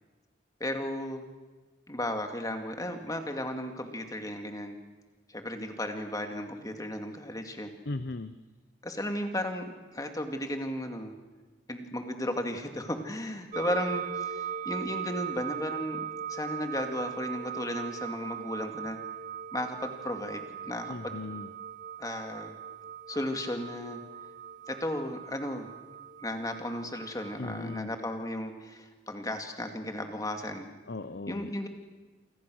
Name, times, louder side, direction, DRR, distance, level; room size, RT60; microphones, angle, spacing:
voice 1, 0.6-1.2 1.9-4.8 5.3-7.7 8.8-11.1 11.7-16.0 16.3-19.0 19.5-21.2 22.0-22.6 23.1-24.0 24.7-25.7 26.2-30.7 31.3-31.7, left 1 dB, 20° left, 5 dB, 2.3 m, -35 dB
voice 2, 7.8-8.4 20.9-21.5 27.4-27.9 30.9-31.5, left 2 dB, 60° left, 11 dB, 0.8 m, -37 dB
sound 1, 13.5-27.8, right 8 dB, 40° right, 1.0 m, -39 dB
28.0 x 25.0 x 6.4 m, 1.3 s
head